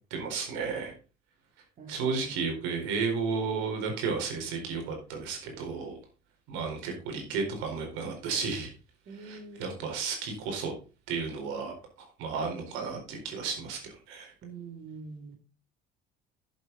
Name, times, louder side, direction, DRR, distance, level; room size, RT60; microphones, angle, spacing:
voice 1, 0.1-0.9 1.9-6.0 6.5-8.7 9.1-10.7 11.1-14.3, right 5 dB, 75° right, 3 dB, 4.5 m, -33 dB
voice 2, 1.8-2.4 9.1-9.8 14.4-15.4, right 4 dB, 45° right, 2 dB, 2.8 m, -45 dB
11.0 x 7.8 x 4.0 m, 0.34 s
supercardioid pair, 100°, 20 cm